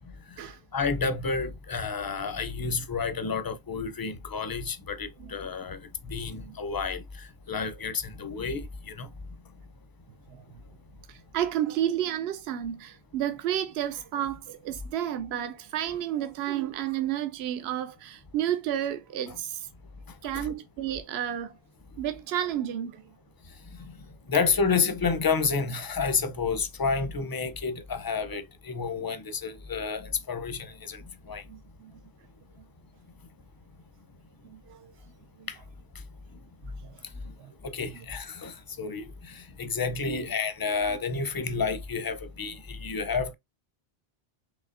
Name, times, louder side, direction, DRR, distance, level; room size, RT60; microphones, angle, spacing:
voice 1, 0.7-5.8 6.1-9.1 20.3-20.5 24.3-31.0 31.3-31.4 35.5-35.6 37.6-43.3, left 5 dB, 30° left, 0.5 m, -30 dB
voice 2, 11.1-19.7 20.2-21.6 22.0-23.0 31.5-31.9 34.5-34.9 35.4-35.5 36.8-37.0 37.4-37.5 37.9-38.0 40.1-40.3, right 11 dB, 80° right, 0.8 m, -31 dB
5.3 x 3.2 x 2.4 m
omnidirectional pair, 1.0 m